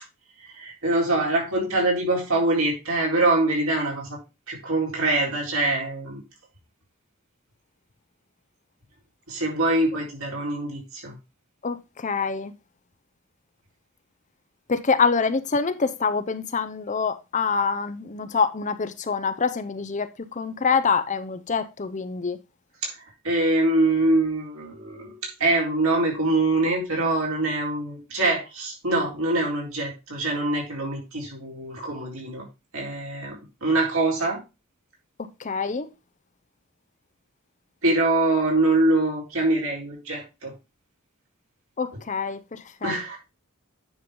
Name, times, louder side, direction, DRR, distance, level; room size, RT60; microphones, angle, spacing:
voice 1, 0.5-4.2 4.5-6.2 9.3-11.1 22.8-22.9 23.2-25.1 25.4-32.4 32.7-34.4 37.8-40.5 42.8-43.2, right 2 dB, 75° right, 4.1 m, -24 dB
voice 2, 11.6-12.5 14.7-22.4 35.4-35.9 41.8-42.9, left 5 dB, 35° left, 0.6 m, -25 dB
9.6 x 5.5 x 3.7 m
head